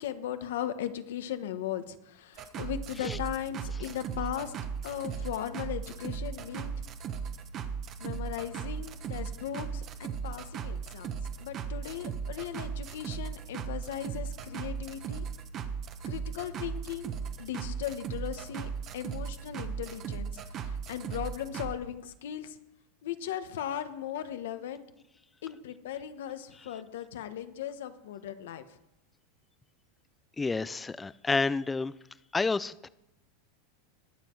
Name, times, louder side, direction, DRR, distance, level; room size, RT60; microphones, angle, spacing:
voice 1, 0.0-4.5 4.8-6.7 8.0-15.2 16.1-17.1 17.4-22.6 23.0-24.8 25.4-28.6, left 10 dB, 80° left, 10 dB, 1.2 m, -38 dB
sound 1, 2.4-21.7, right 6 dB, 35° right, 1.1 m, -37 dB
voice 2, 30.4-31.9 32.3-32.9, left 3 dB, 10° left, 18 dB, 0.4 m, -29 dB
20.0 x 7.4 x 4.6 m, 0.89 s
supercardioid pair, 145°, 0 cm